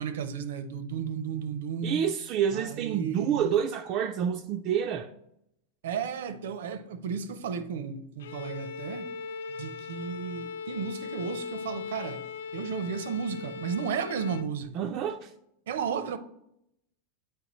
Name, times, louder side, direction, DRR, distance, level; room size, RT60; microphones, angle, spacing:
voice 1, 0.0-2.0 2.5-3.5 5.8-9.1 9.6-12.2 12.5-14.7 15.7-16.2, right 7 dB, 85° right, 0.6 m, -33 dB
voice 2, 1.8-5.1 14.7-15.3, right 8 dB, 35° right, 0.3 m, -28 dB
Bowed string instrument, 8.2-14.6, left 5 dB, 90° left, 0.4 m, -39 dB
8.6 x 4.6 x 3.0 m
supercardioid pair, 165°, 0 cm